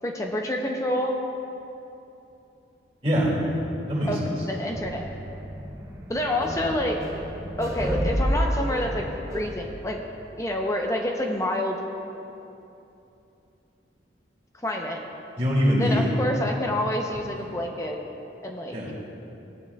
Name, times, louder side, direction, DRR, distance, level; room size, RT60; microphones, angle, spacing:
voice 1, 0.0-1.2 4.1-5.1 6.1-7.0 7.6-9.1 9.3-10.0 10.4-11.8 14.6-15.0 15.8-18.0 18.4-18.8, left 1 dB, 15° left, 1 dB, 0.6 m, -28 dB
voice 2, 3.0-4.3 15.4-16.1 17.4-17.6 18.7-18.9, equal, 30° right, -5 dB, 2.4 m, -24 dB
sound 1, 4.7-9.7, equal, 15° right, 0.7 m, -30 dB
15.5 x 9.3 x 2.3 m, 2.9 s
head